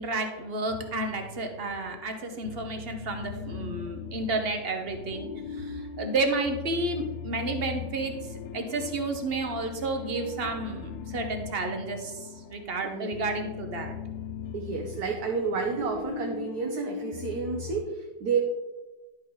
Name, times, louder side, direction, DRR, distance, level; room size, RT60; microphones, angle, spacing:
voice 1, 0.0-5.3 5.6-8.1 8.5-12.1 12.5-13.9, right 2 dB, 40° right, 5 dB, 1.0 m, -31 dB
sound 1, 0.7-17.8, left 7 dB, 85° left, 1.3 m, -40 dB
voice 2, 14.5-18.4, right 5 dB, 65° right, 1 dB, 1.3 m, -30 dB
11.0 x 5.5 x 3.9 m, 1.1 s
omnidirectional pair, 1.8 m